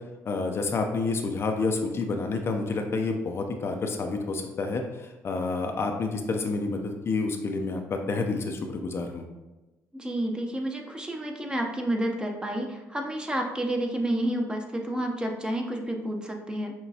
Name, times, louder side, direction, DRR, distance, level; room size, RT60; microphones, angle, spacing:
voice 1, 0.3-9.2, left 3 dB, 45° left, 4 dB, 0.5 m, -29 dB
voice 2, 9.9-16.7, right 1 dB, 15° right, 3 dB, 0.6 m, -30 dB
5.9 x 2.3 x 2.7 m, 1.1 s
supercardioid pair, 75°, 6 cm